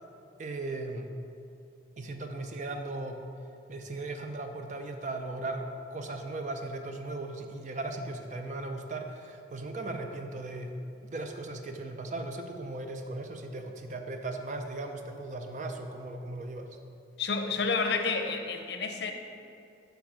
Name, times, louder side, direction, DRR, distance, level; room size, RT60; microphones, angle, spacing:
voice 1, 0.4-1.1 2.0-3.2 3.7-10.8 11.0-16.8, right 2 dB, 40° right, 5 dB, 0.5 m, -37 dB
voice 2, 17.2-19.1, left 4 dB, 65° left, 5 dB, 0.6 m, -30 dB
7.7 x 3.5 x 6.2 m, 2.6 s
head